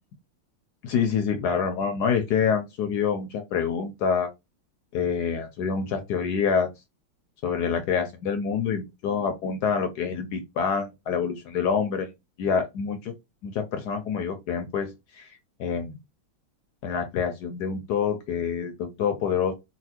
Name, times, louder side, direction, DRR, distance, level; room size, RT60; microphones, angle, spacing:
voice 1, 0.8-4.3 4.9-6.7 7.4-12.1 12.4-13.1 13.4-15.9 16.8-19.5, left 6 dB, 70° left, 1.0 m, -27 dB
4.1 x 2.3 x 2.8 m
omnidirectional pair, 2.2 m